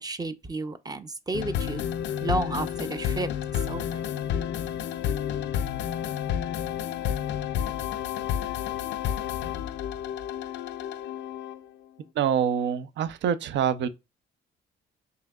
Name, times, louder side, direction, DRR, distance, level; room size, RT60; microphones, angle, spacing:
voice 1, 0.0-1.8 2.2-3.3 3.7-4.0, right 2 dB, 20° right, 0.5 m, -31 dB
sound 1, 1.3-11.7, left 9 dB, 65° left, 0.4 m, -30 dB
voice 2, 12.2-13.9, right 8 dB, 65° right, 0.5 m, -25 dB
5.6 x 2.8 x 2.3 m
cardioid pair, 90°, 20 cm